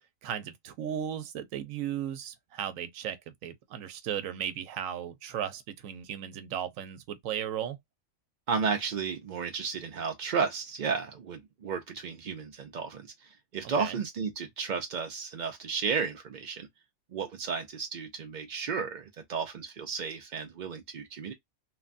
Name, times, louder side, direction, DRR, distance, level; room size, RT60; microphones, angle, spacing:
voice 1, 0.2-7.8 13.8-14.0, right 9 dB, 85° right, 1.0 m, -36 dB
voice 2, 8.5-16.7 17.1-21.3, right 5 dB, 60° right, 0.5 m, -33 dB
3.2 x 2.2 x 2.4 m
omnidirectional pair, 1.4 m